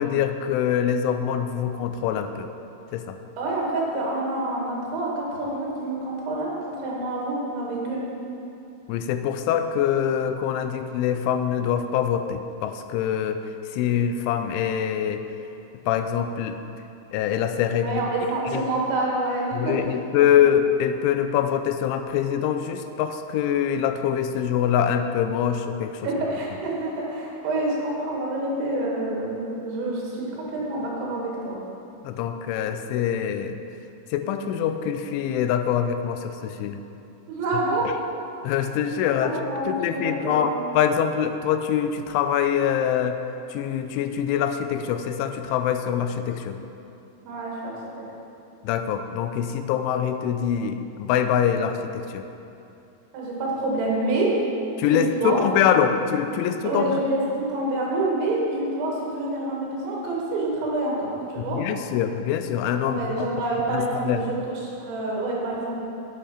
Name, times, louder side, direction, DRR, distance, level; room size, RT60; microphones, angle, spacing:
voice 1, 0.0-2.5 2.9-3.2 8.9-13.4 13.7-15.2 15.9-16.6 17.1-18.0 18.5-18.7 19.5-26.0 32.0-33.6 34.1-36.8 38.4-39.4 39.7-43.2 43.5-46.6 48.6-52.2 54.8-57.0 61.4-63.3 63.7-64.2, left 9 dB, 90° left, 8 dB, 3.0 m, -24 dB
voice 2, 3.4-8.0 17.8-19.7 26.0-31.6 37.3-37.9 39.2-40.5 47.2-48.0 53.1-54.3 54.8-55.4 56.7-61.6 62.8-65.8, right 2 dB, 75° right, -3 dB, 4.1 m, -27 dB
8.6 x 8.5 x 5.6 m, 2.8 s
omnidirectional pair, 5.5 m